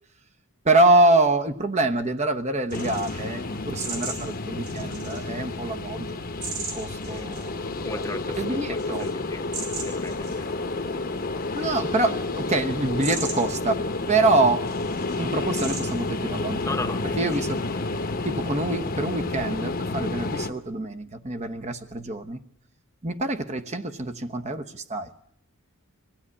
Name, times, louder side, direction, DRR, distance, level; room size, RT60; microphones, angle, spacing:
voice 1, 0.6-6.2 6.6-7.6 8.4-9.1 11.5-14.7 15.2-16.6 17.2-17.6 18.2-22.4 23.0-25.1, right 2 dB, 30° right, 6 dB, 1.1 m, -25 dB
sound 1, 2.7-20.5, left 2 dB, 40° left, 1.1 m, -30 dB
sound 2, 2.7-17.5, right 4 dB, 85° right, 6.3 m, -41 dB
voice 2, 7.8-10.7 16.6-17.3 17.7-17.9, left 2 dB, 15° left, 7 dB, 1.1 m, -36 dB
24.0 x 16.5 x 9.8 m, 0.74 s
head